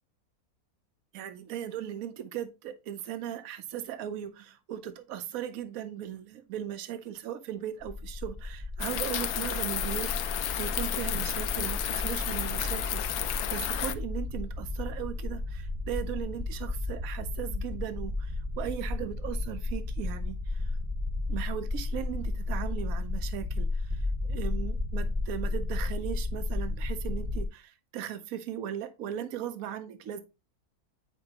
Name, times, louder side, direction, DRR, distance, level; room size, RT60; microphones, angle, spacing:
voice 1, 1.1-20.8 21.3-30.2, right 10 dB, 70° right, 1.1 m, -38 dB
sound 1, 7.8-27.5, left 2 dB, 5° right, 0.8 m, -33 dB
sound 2, 8.8-13.9, left 11 dB, 90° left, 1.2 m, -32 dB
8.7 x 4.5 x 2.9 m
omnidirectional pair, 1.6 m